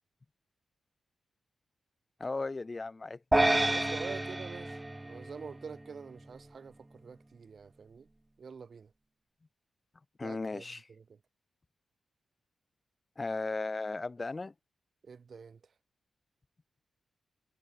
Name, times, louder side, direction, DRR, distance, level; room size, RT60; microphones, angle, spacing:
voice 1, 2.2-3.2 10.2-10.9 13.2-14.5, left 3 dB, 25° left, 1.9 m, -36 dB
sound 1, 3.3-5.8, right 1 dB, 10° right, 0.3 m, -29 dB
voice 2, 3.7-8.1 8.4-8.9 10.2-10.6 15.0-15.6, right 5 dB, 45° right, 2.4 m, -46 dB
wide cardioid pair, 150°, 0 cm